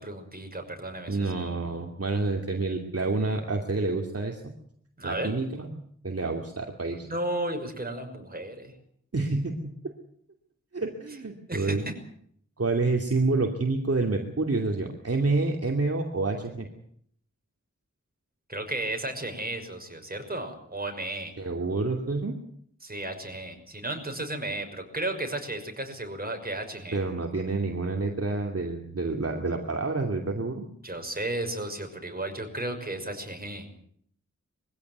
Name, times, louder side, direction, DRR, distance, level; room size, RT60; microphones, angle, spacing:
voice 1, 0.0-1.3 5.0-5.3 7.0-8.7 11.5-11.9 18.5-21.3 22.8-27.0 30.8-33.7, right 1 dB, 30° right, 4 dB, 6.0 m, -34 dB
voice 2, 1.1-4.4 5.0-5.8 6.0-7.1 9.1-9.7 10.7-11.8 12.6-16.7 21.4-22.4 26.9-30.7, right 3 dB, 50° right, 3 dB, 2.7 m, -28 dB
23.0 x 16.0 x 9.5 m, 0.65 s
wide cardioid pair, 70°, 30 cm